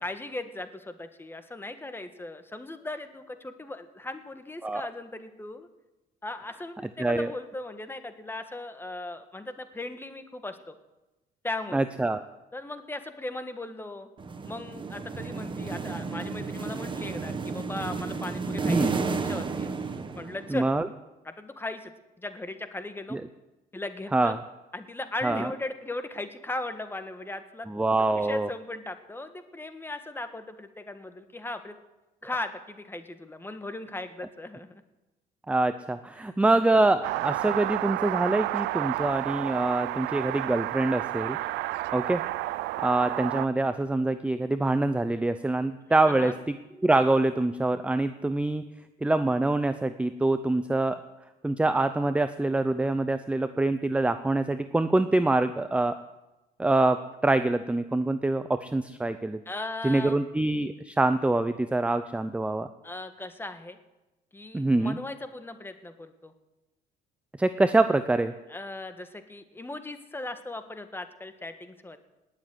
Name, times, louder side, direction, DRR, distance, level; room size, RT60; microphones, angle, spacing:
voice 1, 0.0-5.7 6.2-10.8 11.4-11.9 12.5-14.1 14.4-19.7 20.2-20.7 21.2-21.9 22.2-23.2 23.7-24.3 24.7-27.7 28.2-31.8 32.2-34.7 36.2-36.3 46.1-46.3 59.4-60.2 62.8-63.8 64.3-66.3 68.5-72.0, left 2 dB, 15° left, 9 dB, 1.5 m, -38 dB
voice 2, 7.0-7.3 11.7-12.2 18.6-19.0 20.5-20.9 23.1-23.2 24.1-24.4 25.2-25.5 27.7-28.5 35.5-41.4 41.9-42.2 42.8-46.6 46.8-48.6 49.0-51.0 51.4-56.0 56.6-59.4 59.8-62.7 64.5-65.0 67.4-68.3, right 2 dB, 5° right, 10 dB, 0.6 m, -25 dB
sound 1, 14.2-20.7, right 4 dB, 30° right, 1.4 m, -33 dB
sound 2, 37.0-43.5, right 17 dB, 85° right, 0.5 m, -31 dB
19.0 x 7.4 x 9.6 m, 1.0 s
cardioid pair, 110°, 17 cm